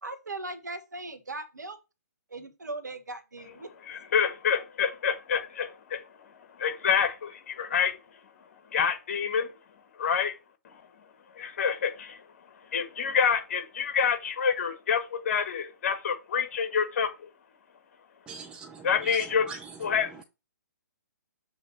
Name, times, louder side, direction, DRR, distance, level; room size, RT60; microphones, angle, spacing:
voice 1, 0.0-1.8 2.3-3.7, right 2 dB, 80° right, 1.5 m, -38 dB
voice 2, 3.9-6.0 6.6-8.0 8.7-9.5 10.0-10.3 11.4-12.2 12.7-17.3 18.8-19.5 19.8-20.2, left 7 dB, 50° left, 1.4 m, -27 dB
voice 3, 18.3-20.0, right 5 dB, 10° right, 0.5 m, -43 dB
7.3 x 3.3 x 5.7 m
figure-of-eight pair, 130°, 9 cm